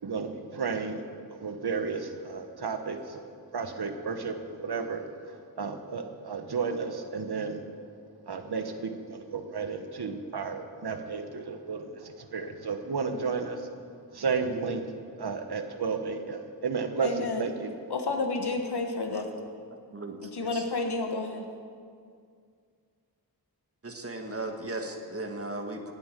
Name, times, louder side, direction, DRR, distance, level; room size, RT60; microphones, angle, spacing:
voice 1, 0.0-7.6 8.3-13.7 14.1-14.8 15.2-17.7, right 5 dB, 80° right, 7 dB, 1.2 m, -33 dB
voice 2, 17.0-17.5 17.9-19.3 20.2-21.5, left 3 dB, 85° left, 4 dB, 1.6 m, -30 dB
voice 3, 19.9-20.6 23.8-25.9, right 2 dB, 35° right, 4 dB, 1.6 m, -37 dB
16.5 x 9.5 x 6.7 m, 2.2 s
wide cardioid pair, 65°, 38 cm